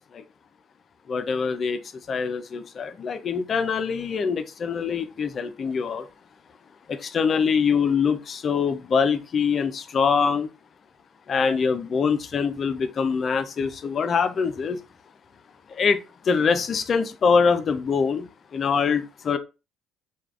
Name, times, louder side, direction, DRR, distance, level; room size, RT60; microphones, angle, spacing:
voice 1, 1.1-1.8 2.1-6.1 6.9-10.5 11.3-14.8 15.7-18.3 18.5-19.4, left 5 dB, 45° left, 0.4 m, -24 dB
3.2 x 2.3 x 2.4 m
hypercardioid pair, 60°, 0 cm